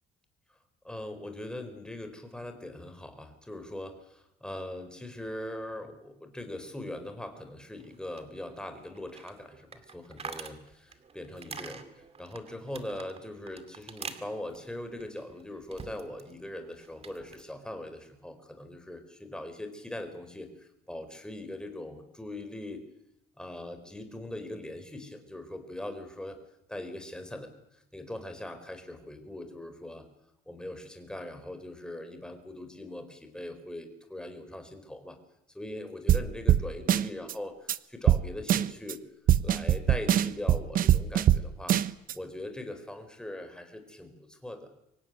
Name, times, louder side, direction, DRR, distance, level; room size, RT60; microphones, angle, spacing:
voice 1, 0.8-11.9 12.2-22.8 23.4-26.4 26.7-27.5 27.9-30.1 30.5-35.2 35.5-39.0 39.4-41.8 42.1-44.7, left 1 dB, 5° left, 7 dB, 4.3 m, -41 dB
sound 1, 7.8-16.3 16.6-17.4, right 6 dB, 35° right, 2.3 m, -46 dB
sound 2, 36.1-36.2 36.5-36.6 36.9-37.3 37.7-37.8 38.1-38.2 38.5-38.9 39.3-41.4 41.7-42.1, right 11 dB, 55° right, 0.9 m, -22 dB
24.5 x 16.0 x 9.6 m, 0.87 s
cardioid pair, 110°, 17 cm